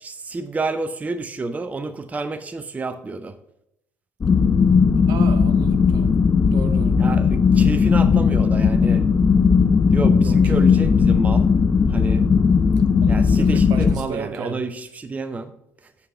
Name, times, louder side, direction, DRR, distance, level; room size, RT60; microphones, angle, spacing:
voice 1, 0.0-3.4 7.0-9.0 9.9-11.5 11.9-12.2 13.1-15.5, right 3 dB, 15° right, 12 dB, 0.5 m, -29 dB
sound 1, 4.2-13.9, left 5 dB, 25° left, 0.8 m, -17 dB
voice 2, 5.1-6.1 6.5-7.0 10.2-10.4 13.0-14.6, right 8 dB, 55° right, 11 dB, 0.7 m, -33 dB
8.3 x 4.7 x 5.5 m, 0.82 s
figure-of-eight pair, 60°, 8 cm